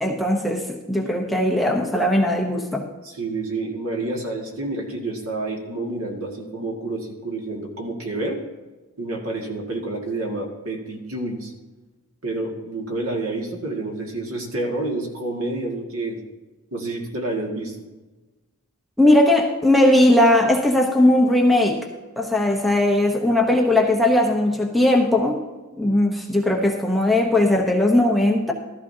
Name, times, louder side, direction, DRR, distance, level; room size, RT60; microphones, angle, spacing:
voice 1, 0.0-2.8 19.0-21.9 22.2-25.4 25.8-28.5, left 1 dB, ahead, 1 dB, 0.9 m, -18 dB
voice 2, 3.0-8.4 9.0-11.5 12.2-16.2 16.7-17.8, right 2 dB, 70° right, 1 dB, 2.0 m, -29 dB
14.0 x 14.0 x 2.8 m, 1.2 s
head